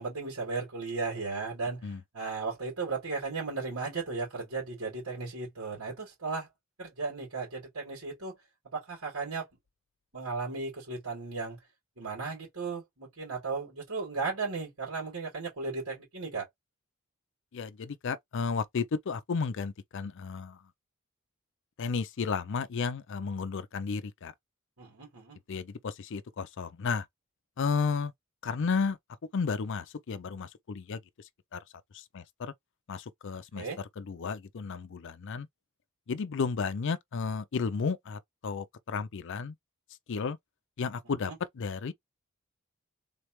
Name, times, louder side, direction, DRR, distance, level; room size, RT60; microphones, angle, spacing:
voice 1, 0.0-6.5 6.8-8.4 8.6-9.5 10.1-11.6 12.0-16.5 24.8-25.4 33.5-33.8 41.3-41.4, right 4 dB, 85° right, 2.8 m, -35 dB
voice 2, 17.5-20.6 21.8-24.3 25.5-27.1 27.6-28.1 28.4-29.0 29.3-31.0 31.5-31.6 31.9-32.5 32.9-33.6 34.0-35.5 36.1-39.5 40.1-40.4 40.8-41.3 41.6-41.9, left 5 dB, 60° left, 0.5 m, -33 dB
3.9 x 3.2 x 3.0 m
head